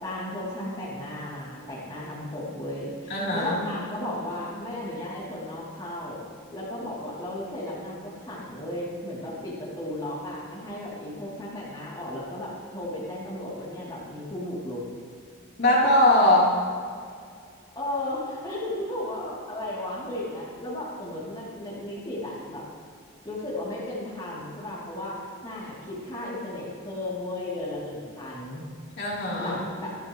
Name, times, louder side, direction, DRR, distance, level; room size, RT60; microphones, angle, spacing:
voice 1, 0.0-6.2 6.5-14.8 17.7-22.6 23.2-28.6 29.4-30.0, left 1 dB, 20° left, -8 dB, 3.2 m, -34 dB
voice 2, 3.1-3.6 15.6-16.5 29.0-29.6, left 1 dB, 50° left, -6 dB, 3.7 m, -21 dB
25.5 x 11.5 x 3.2 m, 2.2 s
head